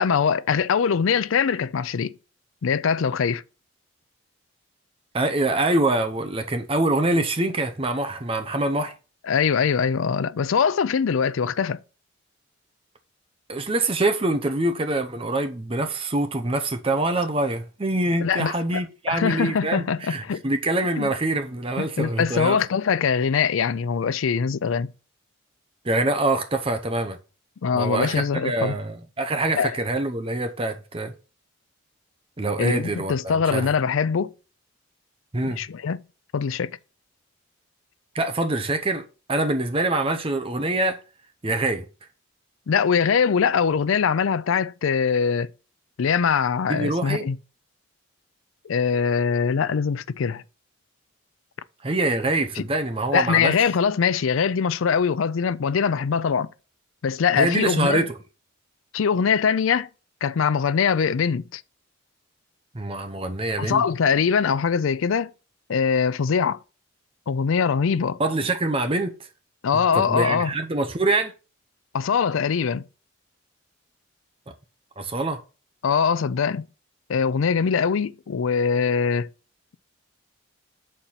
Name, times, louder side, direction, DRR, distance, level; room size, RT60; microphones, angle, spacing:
voice 1, 0.0-2.1 2.6-3.4 9.2-11.8 18.2-18.8 19.1-20.4 21.0-21.1 21.8-24.9 27.6-28.8 29.6-29.7 32.6-34.3 35.4-36.0 36.3-36.8 42.7-45.5 46.0-47.4 48.6-50.4 52.6-52.7 53.1-56.5 57.0-58.1 58.9-59.9 60.2-61.6 63.6-65.3 65.7-66.6 67.3-68.2 69.6-70.5 71.9-72.9 75.8-76.7 77.1-79.3, left 6 dB, 80° left, 0.4 m, -22 dB
voice 2, 5.1-8.9 13.5-22.6 25.8-27.2 27.7-31.1 32.4-33.7 35.3-35.6 38.1-39.0 39.3-41.0 41.4-41.8 46.7-47.3 51.8-53.6 57.4-58.2 62.7-63.8 68.2-69.1 69.9-71.3 75.0-75.4, right 2 dB, 25° right, 0.7 m, -25 dB
6.6 x 4.4 x 5.7 m
head